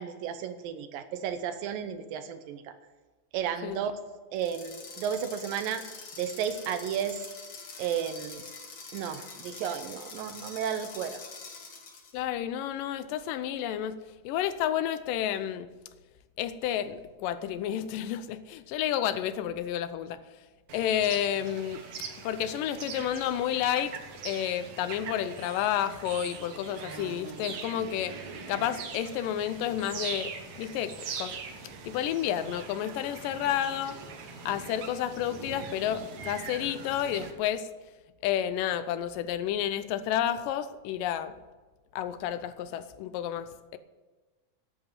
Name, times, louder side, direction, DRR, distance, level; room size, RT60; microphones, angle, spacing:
voice 1, 0.0-2.7 3.3-3.9 4.3-5.8 6.2-7.2 7.8-8.4 8.9-11.2, right 8 dB, 80° right, 10 dB, 2.6 m, -33 dB
sound 1, 4.4-12.2, left 4 dB, 45° left, 2.1 m, -45 dB
voice 2, 12.1-15.7 16.4-20.2 20.7-21.8 22.2-28.2 28.5-31.4 31.8-34.0 34.5-37.7 38.2-41.3 41.9-43.8, left 10 dB, 80° left, 13 dB, 2.2 m, -31 dB
sound 2, 20.7-37.3, right 5 dB, 60° right, 2.4 m, -42 dB
11.0 x 8.3 x 9.0 m, 1.3 s
omnidirectional pair, 4.0 m